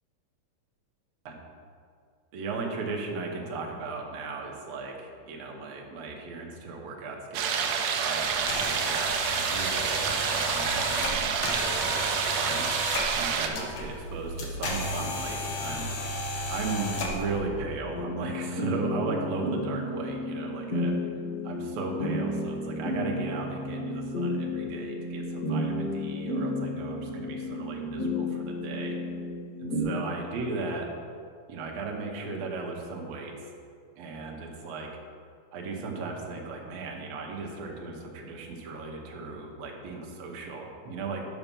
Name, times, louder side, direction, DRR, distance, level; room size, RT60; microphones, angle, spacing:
voice 1, 2.3-12.7 13.2-16.0 16.5-21.0 21.4-29.0 29.6-30.9 31.5-33.3 34.0-34.9 35.5-41.3, right 3 dB, 65° right, 0 dB, 1.8 m, -36 dB
sound 1, 7.3-13.5, right 6 dB, 85° right, 1.6 m, -28 dB
sound 2, 8.2-17.4, left 1 dB, 80° left, 1.1 m, -34 dB
sound 3, 17.9-29.8, left 1 dB, 40° left, 1.5 m, -32 dB
7.2 x 5.6 x 5.3 m, 2.2 s
omnidirectional pair, 3.8 m